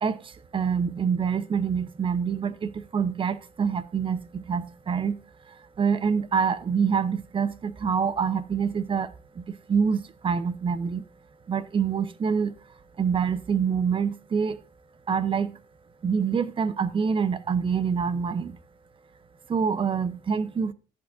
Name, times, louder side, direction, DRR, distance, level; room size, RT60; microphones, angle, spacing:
voice 1, 0.0-5.2 5.5-11.0 11.5-12.5 13.0-14.6 15.1-15.6 16.0-18.6 19.5-20.7, right 6 dB, 35° right, 0.9 m, -26 dB
11.5 x 8.0 x 2.7 m
supercardioid pair, 90°, 16 cm